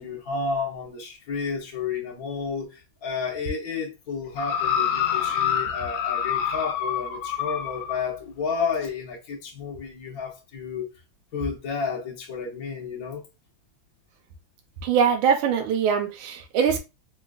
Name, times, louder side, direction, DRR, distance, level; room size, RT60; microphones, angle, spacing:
voice 1, 0.0-10.9 11.3-13.2, left 5 dB, 60° left, 1.0 m, -31 dB
sound 1, 4.4-8.0 8.8-8.9, left 8 dB, 75° left, 1.3 m, -26 dB
voice 2, 14.8-16.8, right 7 dB, 75° right, 1.4 m, -22 dB
4.0 x 2.3 x 2.3 m
omnidirectional pair, 2.3 m